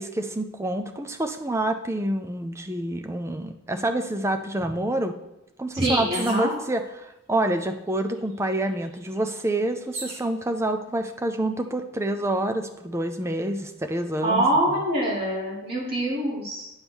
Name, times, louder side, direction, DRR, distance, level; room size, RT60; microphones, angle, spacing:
voice 1, 0.0-5.2 5.6-14.4, right 1 dB, 10° right, 6 dB, 0.4 m, -27 dB
voice 2, 5.7-6.5 14.2-16.7, right 1 dB, 45° right, -7 dB, 2.3 m, -24 dB
sound 1, 6.1-6.6 7.5-7.6 7.9-10.3 11.1-11.6, right 2 dB, 65° right, 1.8 m, -39 dB
9.5 x 3.6 x 6.1 m, 0.92 s
head